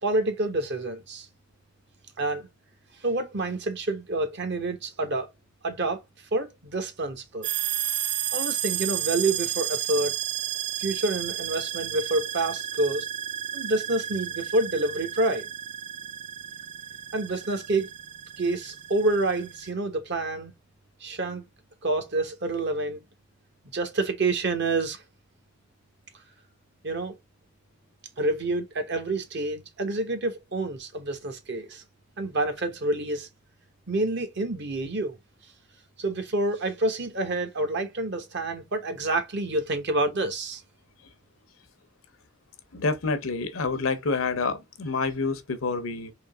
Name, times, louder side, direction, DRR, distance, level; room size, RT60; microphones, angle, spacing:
voice 1, 0.0-1.3 2.2-2.5 3.0-5.3 5.6-6.0 6.3-7.5 8.3-10.2 10.8-13.0 13.5-15.4 17.1-17.9 18.4-20.5 21.0-21.4 21.8-23.0 23.7-25.0 26.8-27.1 28.2-31.8 32.2-33.3 33.9-35.2 36.0-40.6, right 2 dB, 55° right, 1.1 m, -28 dB
sound 1, 7.4-19.7, right 11 dB, 35° right, 0.4 m, -32 dB
voice 2, 42.7-46.1, left 4 dB, 75° left, 0.7 m, -28 dB
3.8 x 2.9 x 3.5 m
head